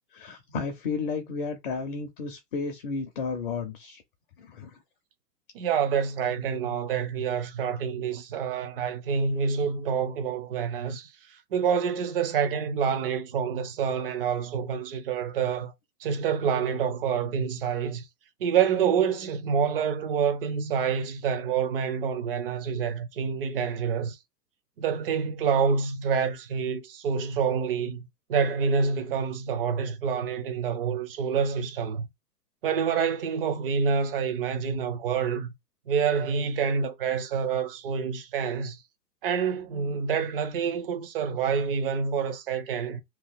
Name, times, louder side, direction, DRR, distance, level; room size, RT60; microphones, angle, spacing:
voice 1, 0.1-4.0 4.4-4.8, left 4 dB, 35° left, 0.5 m, -33 dB
voice 2, 5.5-11.1 11.5-15.7 16.0-18.0 18.4-24.2 24.8-32.1 32.6-35.5 35.9-38.8 39.2-43.0, right 6 dB, 35° right, 0.5 m, -27 dB
2.9 x 2.1 x 3.5 m
hypercardioid pair, 150°, 50 cm